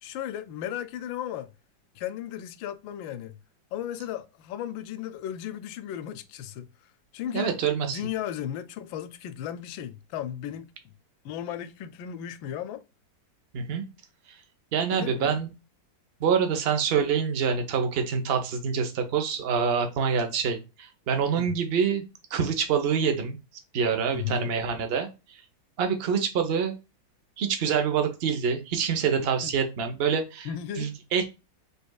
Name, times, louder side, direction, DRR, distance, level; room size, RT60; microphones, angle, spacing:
voice 1, 0.0-1.5 1.9-3.4 3.7-6.7 7.1-10.9 11.2-12.8 14.9-15.4 21.4-21.6 24.1-24.5 29.4-29.5 30.4-30.9, left 10 dB, 80° left, 1.3 m, -35 dB
voice 2, 7.3-8.0 13.5-13.8 14.7-15.5 16.2-22.0 22.3-23.4 23.7-25.1 25.8-26.7 27.4-30.5 30.8-31.2, right 6 dB, 50° right, 0.7 m, -26 dB
5.4 x 3.4 x 2.2 m
omnidirectional pair, 2.1 m